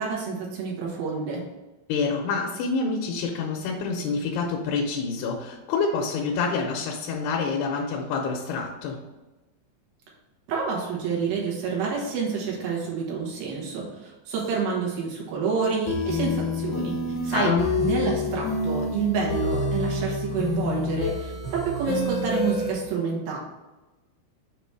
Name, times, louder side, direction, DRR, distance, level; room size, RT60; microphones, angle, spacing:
voice 1, 0.0-1.4 10.5-16.9 17.2-17.5 17.8-23.4, right 5 dB, 70° right, -3 dB, 3.1 m, -28 dB
voice 2, 1.9-9.0 17.3-17.7, left 4 dB, 85° left, 0 dB, 2.6 m, -27 dB
sound 1, 15.9-22.7, left 2 dB, 65° left, 2.0 m, -28 dB
7.0 x 3.0 x 4.6 m, 1.1 s
omnidirectional pair, 4.6 m